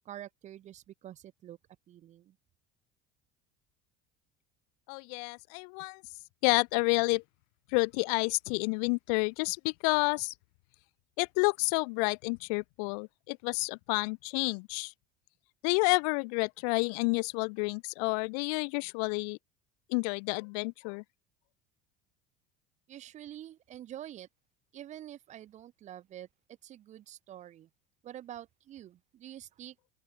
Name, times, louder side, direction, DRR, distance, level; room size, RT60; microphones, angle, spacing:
voice 1, 0.1-1.6 1.9-2.3 22.9-24.3 24.7-26.3 26.6-27.7 28.0-29.7, right 12 dB, 35° right, 0.8 m, -47 dB
voice 2, 4.9-6.0 6.4-7.2 7.7-10.3 11.2-14.9 15.6-19.4 19.9-21.0, left 37 dB, 80° left, 0.5 m, -30 dB
open air
cardioid pair, 135°, 20 cm